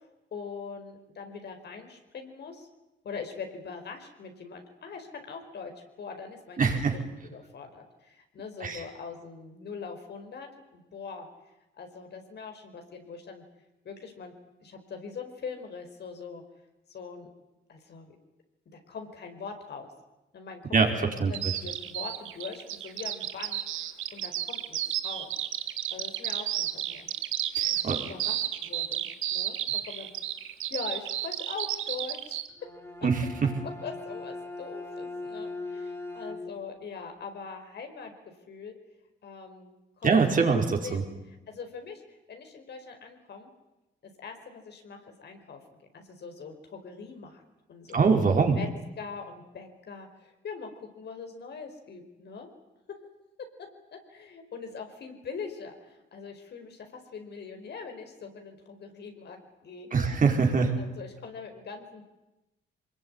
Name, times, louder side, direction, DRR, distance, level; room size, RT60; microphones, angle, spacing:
voice 1, 0.0-2.7 3.0-5.7 6.0-11.3 11.8-13.4 13.8-14.3 14.6-16.4 16.9-17.3 17.7-18.2 18.7-19.9 20.3-25.3 25.9-27.1 27.6-29.6 29.8-30.1 30.7-32.7 33.6-38.7 39.2-40.2 40.8-43.5 44.0-47.4 47.7-48.0 48.3-48.7 49.0-52.5 53.4-53.5 53.9-60.2 60.7-62.0, left 5 dB, 60° left, 5 dB, 4.9 m, -42 dB
voice 2, 6.6-7.0 8.6-8.8 20.7-21.3 27.6-28.0 33.0-33.5 40.0-41.0 47.9-48.6 59.9-60.8, right 5 dB, 40° right, 3 dB, 4.8 m, -23 dB
Bird vocalization bird call bird song, 21.3-32.5, right 12 dB, 85° right, 1.6 m, -32 dB
Bowed string instrument, 32.5-36.8, left 2 dB, 10° left, 5.5 m, -40 dB
24.0 x 21.0 x 9.8 m, 0.99 s
cardioid pair, 90°, 20 cm